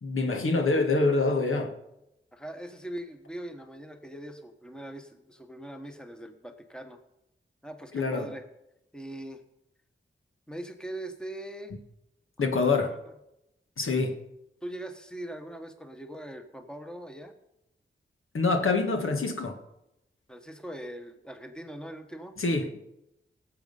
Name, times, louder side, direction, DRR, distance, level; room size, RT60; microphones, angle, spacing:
voice 1, 0.0-1.7 7.9-8.3 12.4-12.9 13.8-14.1 18.3-19.6 22.4-22.8, left 3 dB, 85° left, 1.7 m, -25 dB
voice 2, 2.3-7.0 7.6-8.5 8.9-9.4 10.5-11.8 12.4-13.0 14.6-17.3 20.3-22.4, right 1 dB, 5° left, 1.3 m, -41 dB
17.5 x 7.6 x 5.5 m
wide cardioid pair, 100°, 21 cm